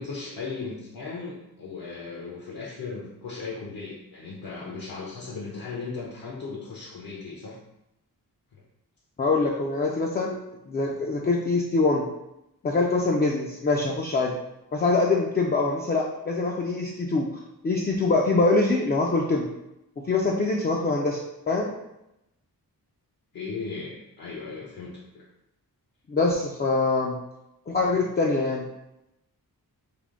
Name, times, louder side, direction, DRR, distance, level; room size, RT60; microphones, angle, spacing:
voice 1, 0.0-7.6 8.5-8.6 23.3-25.2, left 4 dB, 65° left, -5 dB, 0.7 m, -37 dB
voice 2, 9.2-10.4 10.7-12.1 12.6-14.4 14.7-17.3 17.6-19.5 20.0-21.2 21.5-21.7 26.1-27.2 27.7-28.7, left 3 dB, 30° left, -1 dB, 0.3 m, -24 dB
3.4 x 2.1 x 3.6 m, 0.89 s
wide cardioid pair, 100°, 38 cm